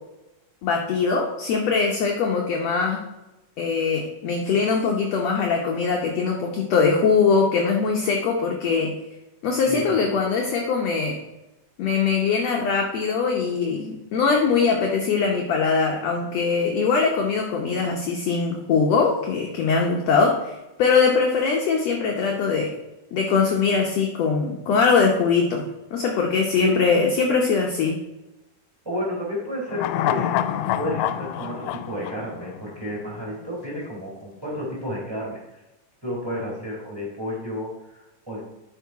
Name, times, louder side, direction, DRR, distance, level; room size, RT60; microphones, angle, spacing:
voice 1, 0.6-3.0 3.6-8.9 9.4-11.2 11.8-22.7 23.1-25.7 25.9-28.0, left 5 dB, 70° left, 1 dB, 1.8 m, -22 dB
voice 2, 9.6-10.2 26.6-26.8 28.8-30.4 30.7-35.6 36.0-38.4, left 1 dB, 10° right, -5 dB, 3.0 m, -31 dB
sound 1, 29.7-33.1 33.4-33.5, left 11 dB, 90° left, 2.1 m, -27 dB
12.0 x 4.8 x 4.6 m, 0.99 s
omnidirectional pair, 3.6 m